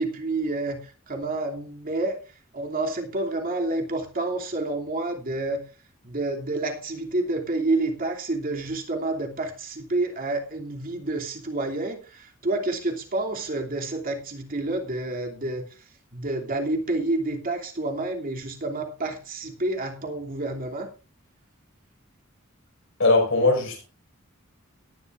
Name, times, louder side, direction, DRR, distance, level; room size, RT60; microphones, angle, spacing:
voice 1, 0.0-2.2 2.5-5.6 6.0-15.6 16.1-20.9, right 2 dB, 45° right, 2.9 m, -29 dB
voice 2, 23.0-23.8, left 2 dB, 65° left, 5.5 m, -20 dB
18.0 x 11.5 x 2.6 m
head